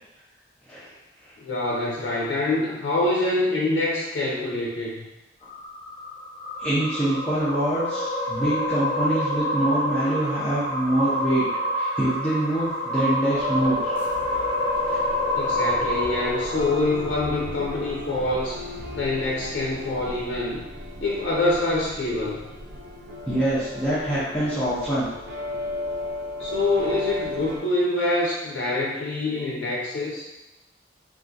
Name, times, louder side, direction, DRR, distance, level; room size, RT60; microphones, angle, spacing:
voice 1, 1.4-5.1 15.3-18.6 18.9-20.6 21.0-22.4 26.4-30.2, left 2 dB, 80° left, -5 dB, 0.5 m, -25 dB
sound 1, 5.4-17.9, left 1 dB, 40° left, 0.9 m, -28 dB
voice 2, 6.6-11.4 11.7-14.0 23.3-25.1, right 1 dB, 5° left, -12 dB, 0.6 m, -25 dB
sound 2, 13.3-27.6, left 2 dB, 80° right, 0.4 m, -35 dB
2.6 x 2.5 x 2.3 m, 0.98 s
head